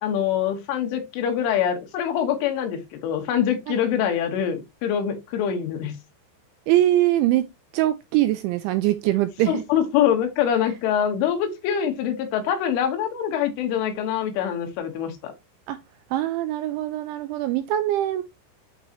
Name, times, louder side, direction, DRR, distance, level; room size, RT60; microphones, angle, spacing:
voice 1, 0.0-6.0 9.5-15.3, left 9 dB, 75° left, 3.8 m, -24 dB
voice 2, 6.7-7.5 7.7-9.6 15.7-15.8 16.1-18.2, right 14 dB, 85° right, 2.7 m, -22 dB
11.0 x 4.7 x 2.9 m
omnidirectional pair, 5.9 m